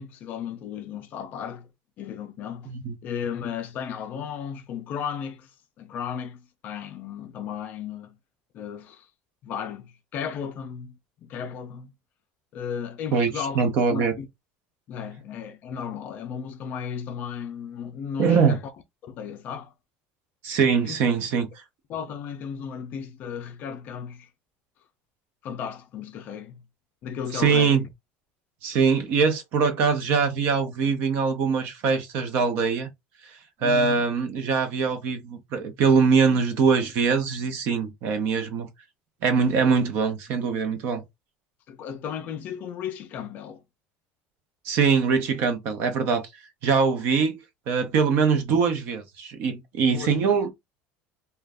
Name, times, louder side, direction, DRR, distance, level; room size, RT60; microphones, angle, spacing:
voice 1, 0.0-1.7 2.0-2.7 3.0-8.2 8.5-9.1 9.4-11.9 12.5-13.6 13.9-14.3 14.9-18.6 19.0-19.7 20.8-21.0 21.9-24.3 25.4-26.7 27.0-27.9 33.6-34.1 41.7-43.6 49.9-50.4, left 7 dB, 35° left, 0.4 m, -35 dB
voice 2, 13.1-14.1 18.2-18.6 20.4-21.5 27.3-27.9 28.6-32.9 33.3-38.7 39.2-41.0 44.6-46.3 46.6-47.4 47.7-50.5, right 5 dB, 45° right, 0.7 m, -23 dB
2.5 x 2.2 x 3.4 m
cardioid pair, 180°, 5 cm